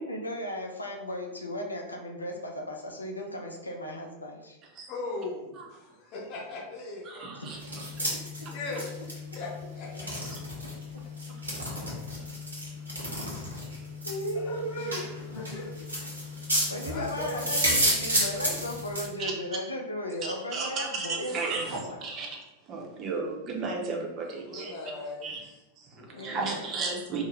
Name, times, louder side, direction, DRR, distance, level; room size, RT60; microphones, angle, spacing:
voice 1, 0.0-4.6 7.3-7.5 13.2-13.5 14.0-15.1 16.7-22.0 26.1-26.7, equal, 80° left, 1 dB, 0.4 m, -36 dB
voice 2, 4.9-7.5 8.5-8.9 9.3-10.1 14.4-15.8 16.8-17.5 24.2-25.5 25.9-26.5, left 2 dB, 40° left, -5 dB, 0.8 m, -39 dB
voice 3, 7.1-7.6 10.3-10.4 19.2-19.3 20.2-22.4 22.7-24.7 25.2-25.4 25.8-27.2, right 4 dB, 35° right, 0 dB, 0.6 m, -34 dB
sound 1, 7.4-19.1, equal, 85° right, 0.8 m, -32 dB
2.7 x 2.0 x 3.1 m, 1.0 s
figure-of-eight pair, 90°, 0 cm